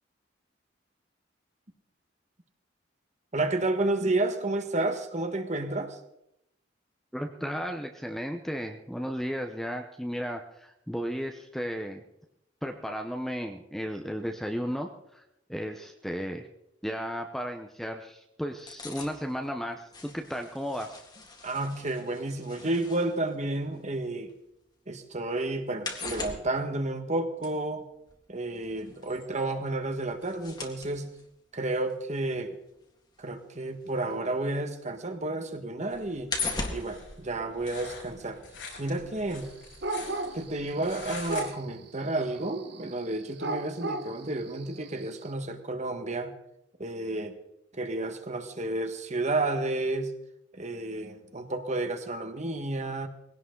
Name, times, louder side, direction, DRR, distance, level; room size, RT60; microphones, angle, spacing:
voice 1, 3.3-6.0 21.4-24.3 24.9-27.8 28.3-31.1 31.5-32.5 33.2-36.3 36.7-38.4 38.8-39.5 40.3-46.3 46.8-47.4 47.7-50.1 50.5-53.1, right 2 dB, 35° right, 7 dB, 1.5 m, -31 dB
voice 2, 7.1-12.0 12.6-15.2 15.5-16.5 16.8-21.0, equal, ahead, 3 dB, 0.9 m, -34 dB
sound 1, 18.5-24.6 24.9-34.6 35.0-38.1 38.4-38.5, left 3 dB, 20° left, 2.0 m, -40 dB
sound 2, 35.9-41.4, left 4 dB, 90° left, 6.3 m, -45 dB
sound 3, 39.8-41.0 41.3-41.7 42.1-45.2, right 2 dB, 60° right, 1.2 m, -35 dB
21.0 x 17.0 x 3.9 m, 0.81 s
head